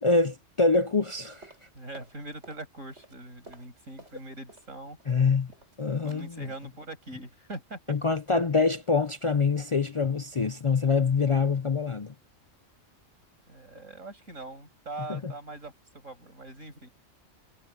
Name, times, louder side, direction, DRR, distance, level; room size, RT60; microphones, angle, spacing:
voice 1, 0.0-1.5 5.1-5.5 5.8-6.5 7.9-12.1 15.1-15.3, left 4 dB, 50° left, 0.3 m, -25 dB
sound 1, 1.4-2.7 2.9-4.7 5.0-5.8 6.1-6.3 6.6-6.8 7.1-7.3 7.6-7.7, right 1 dB, 60° right, 6.4 m, -53 dB
voice 2, 1.7-5.0 5.9-8.0 13.5-16.9, right 2 dB, 90° right, 7.6 m, -42 dB
omnidirectional pair, 1.3 m